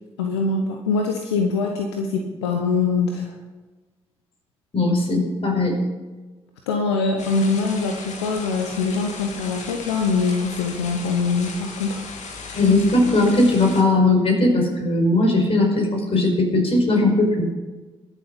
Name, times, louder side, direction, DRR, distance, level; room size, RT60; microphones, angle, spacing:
voice 1, 0.2-3.3 6.7-12.0, left 4 dB, 85° left, 3 dB, 0.9 m, -23 dB
voice 2, 4.7-5.8 12.5-17.5, left 2 dB, 45° left, 1 dB, 4.9 m, -18 dB
sound 1, 7.2-13.8, left 4 dB, 60° left, 1.9 m, -36 dB
22.0 x 7.4 x 5.2 m, 1.2 s
hypercardioid pair, 40°, 14 cm